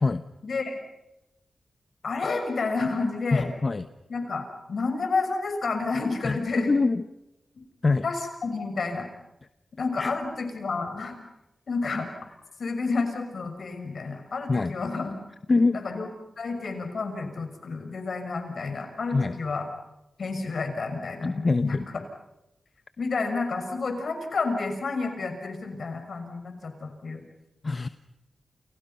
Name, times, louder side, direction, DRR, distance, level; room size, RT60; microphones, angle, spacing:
voice 1, 0.4-0.8 2.0-3.5 4.1-6.7 8.0-9.1 9.8-11.2 11.7-12.1 12.6-15.1 15.7-16.1 16.4-19.6 20.2-21.8 23.0-27.2, left 4 dB, 70° left, 6 dB, 6.2 m, -30 dB
voice 2, 3.3-3.9 6.2-7.0 7.8-8.1 10.0-10.1 14.5-14.8 15.5-15.8 19.1-19.4 21.2-21.8 27.6-27.9, left 3 dB, 45° left, 10 dB, 1.1 m, -24 dB
29.5 x 29.5 x 5.7 m, 0.95 s
cardioid pair, 55°, 0 cm